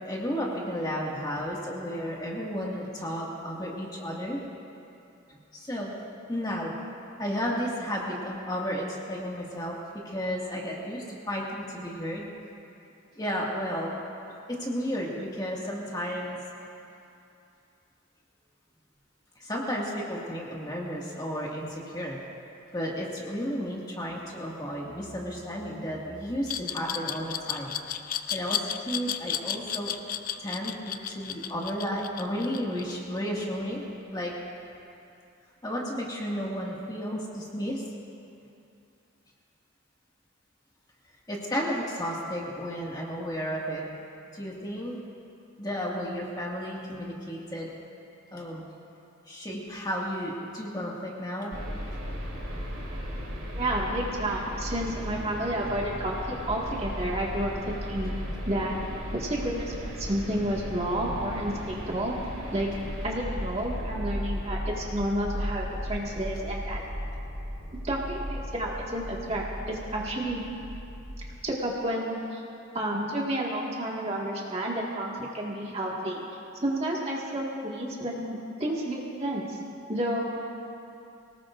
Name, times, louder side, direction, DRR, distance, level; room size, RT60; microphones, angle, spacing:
voice 1, 0.0-4.4 5.3-5.9 6.3-6.7 7.2-9.8 10.0-12.3 13.2-14.0 14.3-16.4 19.4-22.2 22.7-27.7 28.3-29.9 30.4-33.8 34.1-34.3 35.6-37.8 41.3-43.8 44.3-45.0 45.6-47.7 48.3-48.6 49.3-51.6, equal, 20° left, -4 dB, 2.0 m, -33 dB
Glass, 26.5-33.3, left 9 dB, 40° left, 0.5 m, -33 dB
sound 1, 51.5-71.4, equal, 90° right, 4.6 m, -36 dB
voice 2, 53.5-58.1 58.5-58.8 59.1-62.2 62.5-62.7 63.0-66.8 67.8-70.4 71.4-72.4 72.7-76.2 76.6-79.6 79.9-80.3, right 1 dB, 30° right, -3 dB, 1.9 m, -30 dB
25.0 x 18.5 x 2.6 m, 2.7 s
head